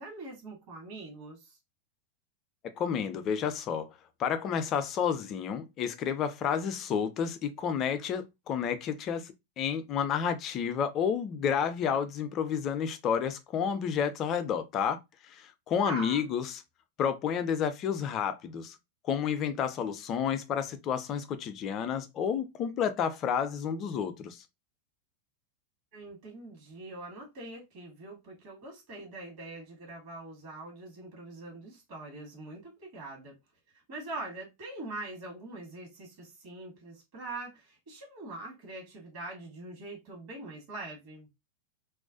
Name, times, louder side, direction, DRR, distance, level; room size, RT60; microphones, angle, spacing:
voice 1, 0.0-1.6 15.8-16.2 25.9-33.4 33.9-41.3, right 2 dB, 45° right, 1.1 m, -43 dB
voice 2, 2.6-3.9 4.2-15.0 15.3-16.6 17.0-18.8 19.0-24.4, left 7 dB, 35° left, 0.4 m, -30 dB
2.4 x 2.1 x 2.5 m
figure-of-eight pair, 90°, 0 cm